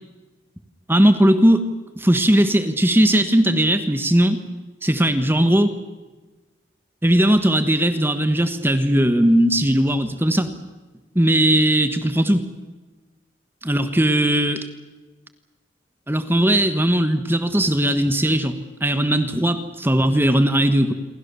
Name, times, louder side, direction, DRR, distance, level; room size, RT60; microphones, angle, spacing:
voice 1, 0.9-1.7 2.0-4.4 4.8-5.8 7.0-10.5 11.1-12.4 13.6-14.7 16.1-20.9, right 1 dB, 10° right, 9 dB, 1.3 m, -18 dB
28.5 x 23.0 x 6.9 m, 1.2 s
head